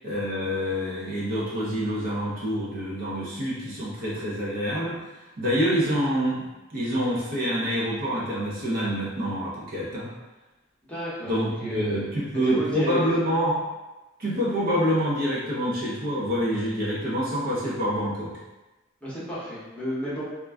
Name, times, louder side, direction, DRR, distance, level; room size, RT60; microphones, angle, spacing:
voice 1, 0.0-5.0 5.4-10.1 11.2-13.6 14.2-18.4, equal, 45° right, -6 dB, 0.6 m, -27 dB
voice 2, 10.9-11.3 11.6-12.0 12.3-13.0 19.0-20.2, equal, 5° left, -10 dB, 0.8 m, -31 dB
2.4 x 2.2 x 3.4 m, 1.1 s
head